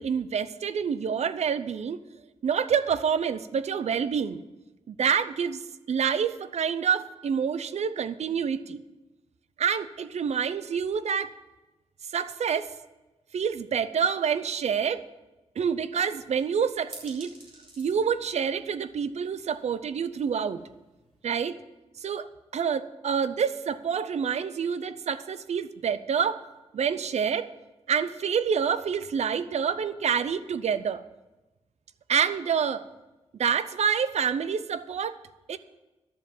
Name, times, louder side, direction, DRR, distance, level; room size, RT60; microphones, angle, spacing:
voice 1, 0.0-2.0 2.4-4.4 4.9-5.6 5.9-8.8 9.6-11.3 12.1-12.7 13.3-15.0 15.6-17.3 17.8-20.6 21.2-21.6 22.0-26.4 26.7-27.5 27.9-31.0 32.1-32.8 33.4-35.2 35.5-35.6, right 7 dB, 80° right, 14 dB, 0.6 m, -27 dB
sound 1, 16.0-21.2, right 2 dB, 50° right, 3.3 m, -53 dB
11.5 x 7.3 x 7.2 m, 1.1 s
wide cardioid pair, 175°, 11 cm